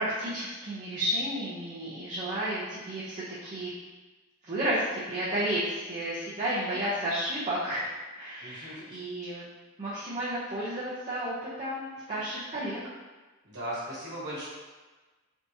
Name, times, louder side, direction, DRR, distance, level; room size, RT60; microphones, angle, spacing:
voice 1, 0.0-3.7 4.4-9.4 9.8-12.8, right 1 dB, 30° right, -11 dB, 0.6 m, -32 dB
voice 2, 8.4-9.0 13.4-14.5, right 1 dB, 50° right, -8 dB, 1.3 m, -38 dB
3.4 x 2.8 x 2.7 m, 1.3 s
head